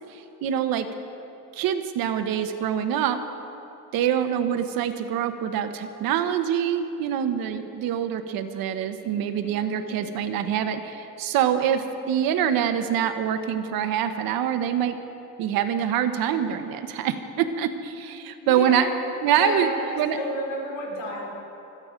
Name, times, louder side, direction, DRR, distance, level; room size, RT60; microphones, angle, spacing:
voice 1, 0.1-0.9 1.5-3.2 3.9-15.0 15.4-18.9 19.2-19.7 20.0-20.2, right 9 dB, 75° right, 9 dB, 1.1 m, -25 dB
voice 2, 18.4-18.9 19.3-21.3, left 1 dB, 70° left, -2 dB, 4.5 m, -31 dB
26.5 x 9.0 x 5.1 m, 2.9 s
cardioid pair, 175°, 35 cm